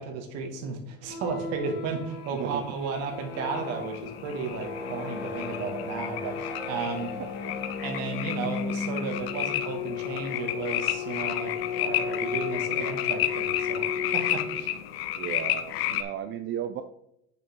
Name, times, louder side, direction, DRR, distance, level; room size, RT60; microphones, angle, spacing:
voice 1, 0.0-7.2 7.8-13.8 14.1-14.7, right 4 dB, 60° right, 4 dB, 2.2 m, -34 dB
sound 1, 1.0-14.8, left 5 dB, 35° left, 1.7 m, -35 dB
sound 2, 2.3-16.0, left 12 dB, 90° left, 0.9 m, -32 dB
voice 2, 2.4-2.8 7.2-7.6 12.6-13.1 15.1-16.8, right 10 dB, 40° right, 9 dB, 0.6 m, -36 dB
8.4 x 6.7 x 3.8 m, 0.78 s
supercardioid pair, 110°, 30 cm